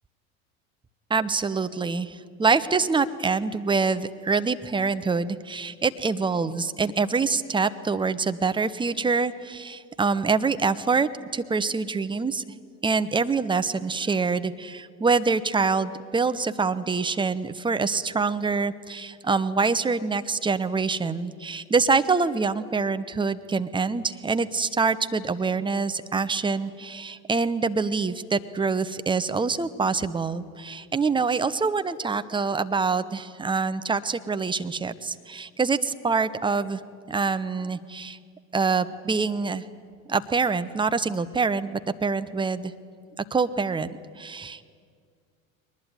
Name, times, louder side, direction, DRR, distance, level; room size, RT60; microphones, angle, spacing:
voice 1, 1.1-12.4 12.8-38.2 38.5-39.6 40.1-42.7 43.3-43.9 44.2-44.6, right 4 dB, 10° right, 11 dB, 0.9 m, -25 dB
21.5 x 20.0 x 9.5 m, 2.1 s
figure-of-eight pair, 75°, 41 cm